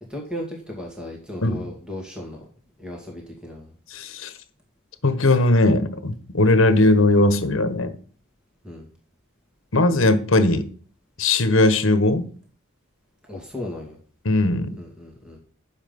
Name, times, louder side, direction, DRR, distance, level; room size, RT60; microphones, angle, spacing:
voice 1, 0.1-2.4 2.8-3.7 8.6-8.9 13.2-14.0 14.8-15.4, left 1 dB, 5° right, 2.2 m, -35 dB
voice 2, 3.9-4.3 5.0-8.0 9.7-10.6 11.2-12.3 14.2-14.7, left 2 dB, 65° left, 1.3 m, -19 dB
9.9 x 7.3 x 5.4 m
head